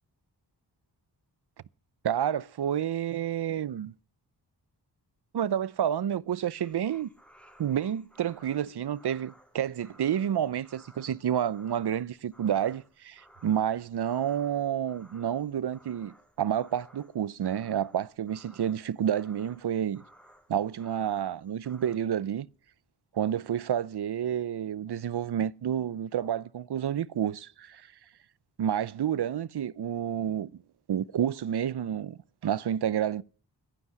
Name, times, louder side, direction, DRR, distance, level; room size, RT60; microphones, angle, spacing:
voice 1, 2.0-3.9 5.3-7.1 7.6-20.0 20.5-22.5 23.1-27.9 28.6-30.5 30.9-33.2, right 9 dB, 70° right, 0.7 m, -29 dB
sound 1, 6.6-22.0, equal, 5° left, 4.2 m, -58 dB
15.5 x 12.5 x 6.0 m
wide cardioid pair, 70°, 40 cm